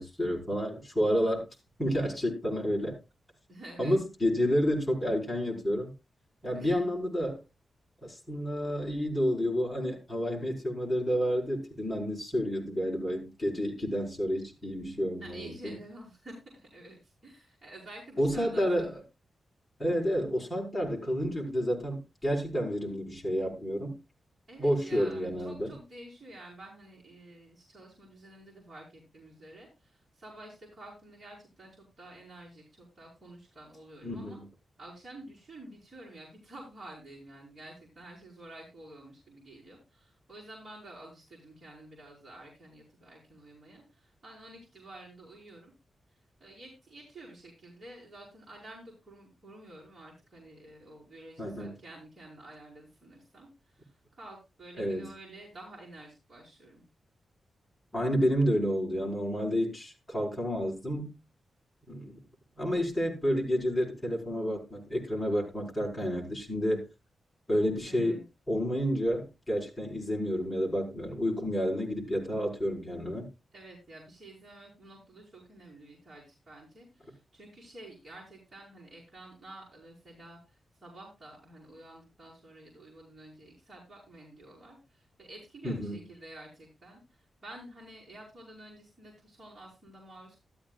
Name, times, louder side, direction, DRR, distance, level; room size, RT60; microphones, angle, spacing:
voice 1, 0.0-1.5 1.8-3.0 3.8-5.9 6.4-7.4 8.0-15.7 18.2-18.9 19.8-23.9 24.6-25.7 34.0-34.4 51.4-51.7 54.8-55.1 57.9-61.2 61.9-62.2 62.6-66.8 67.5-68.2 68.5-73.3 85.6-86.0, equal, 10° left, -2 dB, 4.9 m, -30 dB
voice 2, 3.5-4.0 6.5-6.8 15.2-19.0 24.5-34.4 34.8-45.7 46.1-56.8 67.9-68.2 73.5-90.4, right 1 dB, 30° right, -6 dB, 5.2 m, -50 dB
14.0 x 13.0 x 2.4 m, 0.26 s
wide cardioid pair, 170°, 0 cm